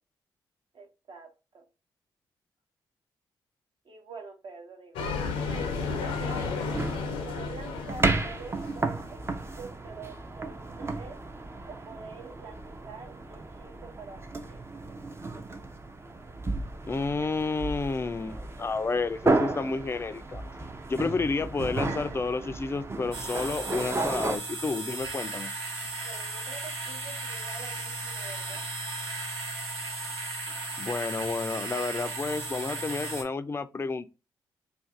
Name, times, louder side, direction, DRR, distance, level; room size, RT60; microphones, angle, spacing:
voice 1, 0.7-1.6 3.8-5.1 5.9-6.8 7.2-11.2 11.6-14.2 14.4-15.0 25.9-28.6, right 4 dB, 55° right, 0.9 m, -46 dB
sound 1, 4.9-8.9, left 4 dB, 85° left, 0.5 m, -33 dB
sound 2, 5.4-24.4, right 2 dB, 25° right, 0.5 m, -33 dB
voice 2, 16.9-20.4 20.9-25.5 30.8-34.1, left 4 dB, 25° left, 0.4 m, -30 dB
sound 3, 23.1-33.2, right 2 dB, 85° right, 0.7 m, -36 dB
2.5 x 2.3 x 3.6 m
supercardioid pair, 50°, 9 cm